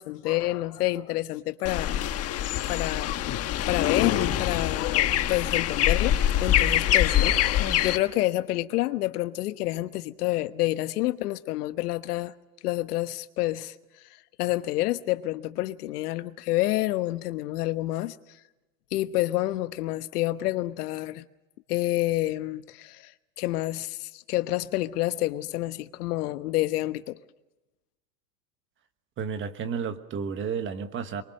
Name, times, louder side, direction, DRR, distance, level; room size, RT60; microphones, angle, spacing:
voice 1, 0.0-2.0 2.7-12.3 12.6-13.8 14.4-18.2 18.9-21.2 21.7-23.1 23.4-27.2, left 16 dB, 70° left, 1.2 m, -28 dB
sound 1, 1.7-8.0, left 11 dB, 30° left, 1.3 m, -24 dB
voice 2, 29.2-31.2, right 6 dB, 25° right, 1.4 m, -32 dB
23.5 x 22.5 x 6.5 m
supercardioid pair, 140°, 47 cm